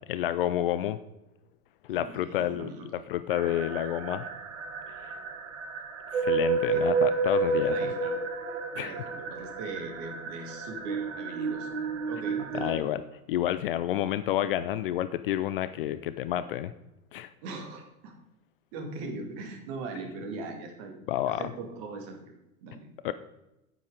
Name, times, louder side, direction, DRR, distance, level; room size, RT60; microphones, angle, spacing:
voice 1, 0.1-1.0 1.9-2.7 3.1-4.3 5.0-5.2 6.1-7.8 8.8-9.0 12.5-13.0 13.3-16.7 17.1-17.3 21.1-21.5 23.0-23.1, left 12 dB, 40° left, 13 dB, 0.4 m, -29 dB
voice 2, 1.9-2.9 6.7-6.8 7.5-8.2 8.8-11.8 12.1-12.9 17.4-18.1 18.7-21.0 21.4-22.3 22.6-22.9, right 3 dB, 45° right, 4 dB, 2.3 m, -40 dB
sound 1, 3.3-12.8, right 4 dB, 60° right, 1.3 m, -30 dB
9.1 x 8.1 x 4.9 m, 0.92 s
figure-of-eight pair, 90°, 43 cm